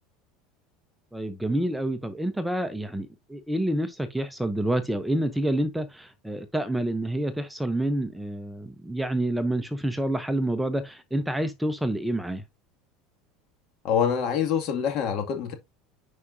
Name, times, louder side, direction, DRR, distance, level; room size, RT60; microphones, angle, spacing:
voice 1, 1.1-12.4, right 1 dB, 5° right, 0.8 m, -28 dB
voice 2, 13.8-15.5, left 8 dB, 50° left, 2.2 m, -25 dB
9.5 x 4.9 x 2.7 m
supercardioid pair, 125°, 0 cm